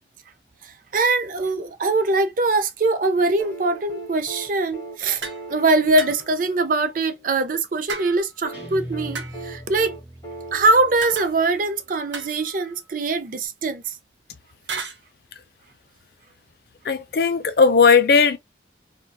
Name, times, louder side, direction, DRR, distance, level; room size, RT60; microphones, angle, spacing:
voice 1, 0.6-5.2 5.5-9.9 10.5-14.0, right 3 dB, 45° right, 0.4 m, -22 dB
sound 1, 3.4-7.5 8.4-12.0 13.5-13.6, right 2 dB, 20° left, 1.4 m, -40 dB
sound 2, 5.2-5.5 6.0-6.4 7.9-8.5 9.1-9.6 11.0-11.7 12.1-12.9 14.7-15.0, right 5 dB, 80° right, 0.8 m, -35 dB
Guitar, 8.5-11.7, equal, 10° right, 1.3 m, -40 dB
voice 2, 16.8-18.4, left 5 dB, 55° left, 0.4 m, -16 dB
3.8 x 2.2 x 2.2 m
head